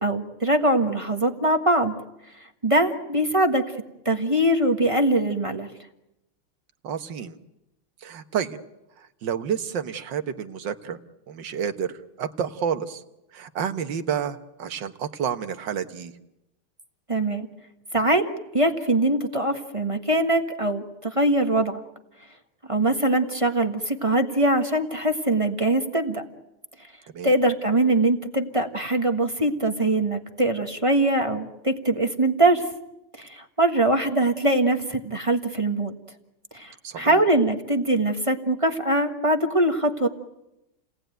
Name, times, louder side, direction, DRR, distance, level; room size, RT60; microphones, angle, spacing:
voice 1, 0.0-1.9 2.6-3.6 4.0-5.7 17.1-17.5 17.9-18.2 18.5-21.8 22.7-26.2 27.2-32.7 33.2-35.9 36.5-40.1, right 1 dB, 20° right, 5 dB, 1.2 m, -22 dB
voice 2, 6.8-7.4 8.0-8.6 9.0-11.0 11.3-13.0 13.3-16.1 27.1-27.3 36.8-37.2, right 8 dB, 60° right, 9 dB, 1.8 m, -30 dB
29.5 x 19.0 x 9.2 m, 0.91 s
omnidirectional pair, 2.4 m